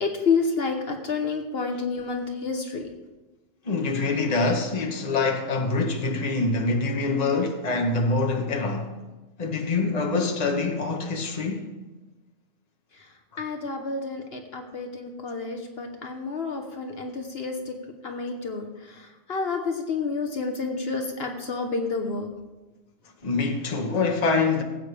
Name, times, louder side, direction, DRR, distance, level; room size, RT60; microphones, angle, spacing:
voice 1, 0.0-2.9 13.0-13.1 13.4-17.8 18.0-22.3, left 4 dB, 60° left, 1.2 m, -29 dB
voice 2, 3.6-9.0 9.4-11.7 23.2-24.6, left 3 dB, 35° left, 1.2 m, -25 dB
18.5 x 8.6 x 3.4 m
omnidirectional pair, 1.2 m